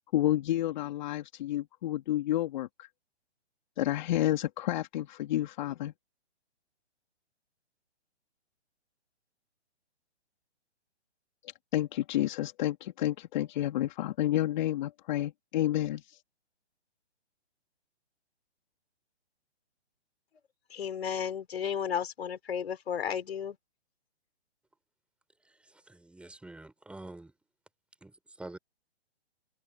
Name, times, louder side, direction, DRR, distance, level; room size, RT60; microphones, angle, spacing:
voice 1, 0.1-2.9 3.8-5.9 11.7-16.2, left 14 dB, 40° left, 2.4 m, -30 dB
voice 2, 20.7-23.6, left 8 dB, 65° left, 4.3 m, -33 dB
voice 3, 25.4-27.3 28.0-28.6, right 2 dB, 5° right, 5.4 m, -47 dB
hypercardioid pair, 140°, 34 cm